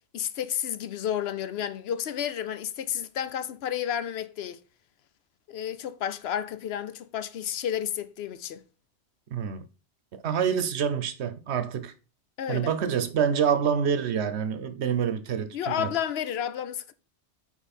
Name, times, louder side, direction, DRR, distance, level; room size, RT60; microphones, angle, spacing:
voice 1, 0.1-4.6 5.5-8.6 12.4-12.7 15.5-16.9, left 9 dB, 70° left, 0.8 m, -31 dB
voice 2, 9.3-9.6 10.2-11.9 12.5-15.9, right 7 dB, 70° right, 1.0 m, -27 dB
5.6 x 4.5 x 4.2 m
omnidirectional pair, 1.2 m